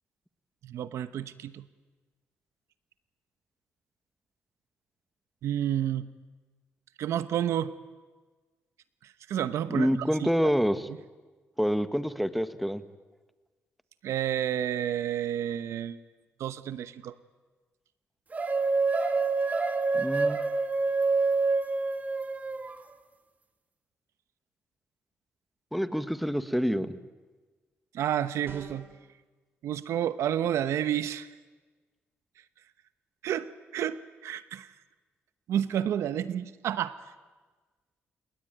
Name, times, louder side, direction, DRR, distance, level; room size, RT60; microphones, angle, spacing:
voice 1, 0.6-1.6 5.4-6.1 7.0-7.7 9.0-9.9 10.2-10.3 10.9-11.0 14.0-16.0 16.4-17.1 27.9-28.9 29.6-31.3 33.2-34.7 35.5-37.0, right 10 dB, 80° right, 13 dB, 1.0 m, -30 dB
voice 2, 9.7-10.9 11.6-12.8 19.9-20.4 25.7-27.0, equal, ahead, 11 dB, 1.5 m, -27 dB
sound 1, 18.3-22.8, right 3 dB, 35° right, 2.3 m, -27 dB
sound 2, 28.5-29.0, right 5 dB, 55° right, 3.9 m, -45 dB
29.5 x 18.5 x 9.2 m, 1.3 s
cardioid pair, 70°, 5 cm